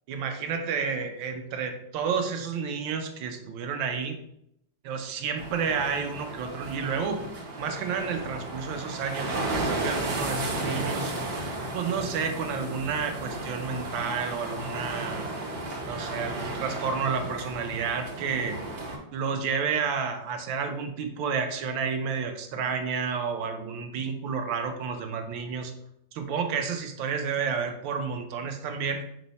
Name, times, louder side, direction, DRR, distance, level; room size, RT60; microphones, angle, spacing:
voice 1, 0.1-4.2 4.8-7.2 7.6-11.1 11.7-15.3 15.9-18.6 19.1-25.7 26.1-29.1, right 6 dB, 85° right, 6 dB, 1.4 m, -30 dB
sound 1, 5.4-19.0, right 2 dB, 65° right, 1.4 m, -34 dB
5.4 x 2.0 x 3.9 m, 0.75 s
omnidirectional pair, 2.1 m